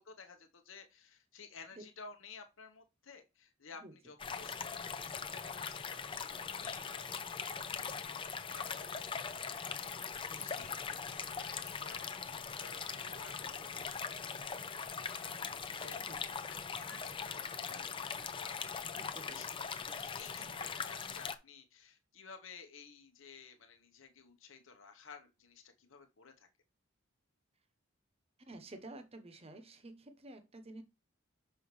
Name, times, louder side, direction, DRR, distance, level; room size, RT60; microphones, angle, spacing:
voice 1, 0.0-7.3 7.6-7.7 8.1-8.2 8.5-9.2 9.5-10.0 10.3-16.2 16.5-19.6 19.9-26.5, left 5 dB, 70° left, 1.0 m, -55 dB
voice 2, 3.8-4.1 10.2-10.4 16.0-16.2 19.0-19.4 20.4-20.6 28.4-30.8, right 2 dB, 30° right, 1.0 m, -51 dB
sound 1, 4.2-21.4, left 6 dB, 25° left, 0.6 m, -41 dB
6.6 x 5.5 x 3.2 m
head